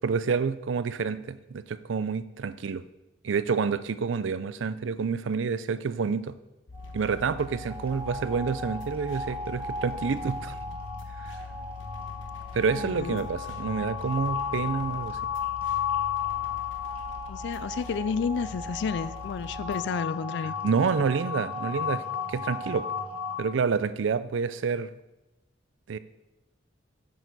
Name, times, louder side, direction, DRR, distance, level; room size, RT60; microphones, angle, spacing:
voice 1, 0.0-2.8 3.2-6.3 6.9-10.6 11.2-11.3 12.5-15.2 20.6-22.0 22.3-22.9 23.4-24.9 25.9-26.0, right 5 dB, 80° right, 14 dB, 0.4 m, -28 dB
sound 1, 6.7-19.8, left 4 dB, 80° left, 1.0 m, -44 dB
sound 2, 6.7-23.4, left 6 dB, 30° right, 1.6 m, -34 dB
voice 2, 12.7-13.3 17.3-20.5, left 6 dB, 65° left, 16 dB, 0.3 m, -31 dB
8.9 x 6.5 x 4.0 m, 0.98 s
head